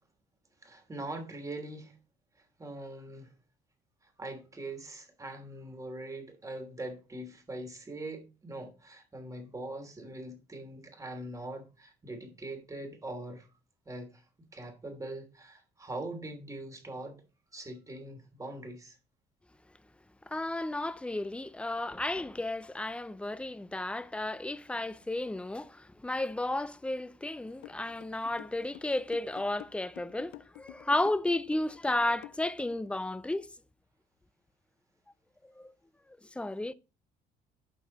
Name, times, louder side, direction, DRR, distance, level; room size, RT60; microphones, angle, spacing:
voice 1, 0.6-2.0 2.6-3.3 4.0-13.5 13.8-14.2 14.5-17.2 17.5-19.0, right 2 dB, 20° right, 3.1 m, -42 dB
voice 2, 20.3-33.5 35.6-35.7 36.4-36.7, left 2 dB, 5° left, 0.6 m, -33 dB
sound 1, 27.6-32.9, left 19 dB, 90° left, 0.5 m, -49 dB
12.0 x 4.9 x 4.2 m
cardioid pair, 110°, 17 cm